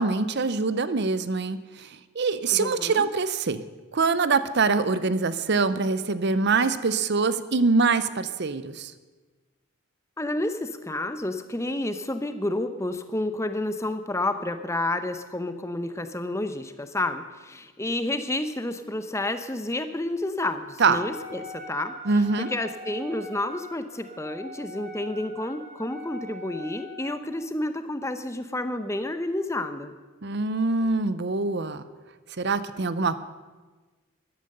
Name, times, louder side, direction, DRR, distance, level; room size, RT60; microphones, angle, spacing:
voice 1, 0.0-1.9 2.1-3.6 3.9-8.9 20.8-21.0 22.1-22.5 30.2-31.8 32.4-33.2, right 4 dB, 50° right, 14 dB, 0.7 m, -24 dB
voice 2, 2.5-3.1 10.2-21.9 22.4-29.9, left 1 dB, 15° left, 9 dB, 0.7 m, -30 dB
Wind instrument woodwind instrument, 20.8-27.3, equal, 35° right, 1.6 m, -42 dB
13.0 x 12.0 x 6.7 m, 1.3 s
head